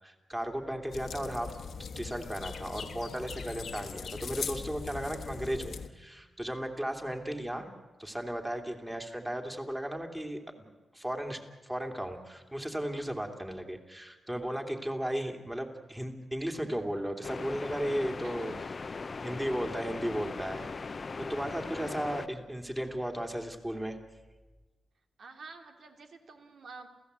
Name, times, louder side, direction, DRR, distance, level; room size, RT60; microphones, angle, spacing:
voice 1, 0.0-1.5 1.9-7.7 8.0-10.4 10.9-18.5 19.2-20.6 21.3-24.0, right 1 dB, 10° right, 4 dB, 2.8 m, -35 dB
sound 1, 0.9-5.9, left 6 dB, 70° left, 1.4 m, -40 dB
sound 2, 17.2-22.3, left 4 dB, 40° left, 0.7 m, -39 dB
voice 2, 18.2-19.0 25.2-26.9, right 4 dB, 70° right, 4 dB, 2.7 m, -50 dB
28.5 x 16.0 x 8.2 m, 1.2 s
cardioid pair, 100°, 0 cm